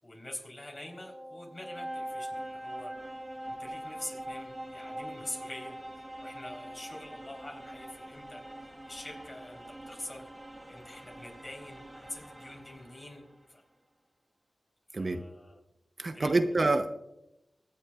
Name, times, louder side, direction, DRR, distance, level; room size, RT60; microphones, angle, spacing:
voice 1, 0.0-2.9 3.5-10.3 10.7-13.6 15.0-15.6 16.1-16.4, left 1 dB, 35° left, 1 dB, 3.6 m, -45 dB
sound 1, 0.6-13.4, right 1 dB, 20° right, 2.6 m, -43 dB
voice 2, 16.0-17.0, right 2 dB, 50° right, 8 dB, 0.7 m, -27 dB
23.5 x 8.4 x 2.4 m, 0.89 s
cardioid pair, 45°, 0 cm